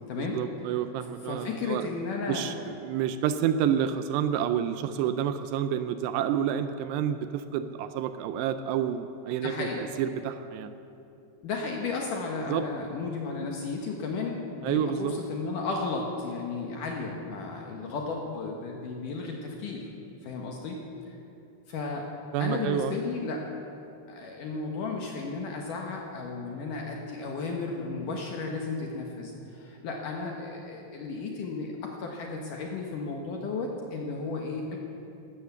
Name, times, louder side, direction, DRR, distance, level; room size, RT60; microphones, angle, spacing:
voice 1, 0.3-1.8 2.3-10.7 12.5-12.6 14.6-15.1 22.3-23.0, right 9 dB, 80° right, 10 dB, 2.6 m, -29 dB
voice 2, 1.2-2.5 9.3-9.8 11.4-19.9 20.2-20.8 21.7-22.1 22.4-23.4 24.1-34.8, left 4 dB, 65° left, 0 dB, 2.2 m, -34 dB
16.0 x 13.0 x 7.0 m, 2.7 s
omnidirectional pair, 5.1 m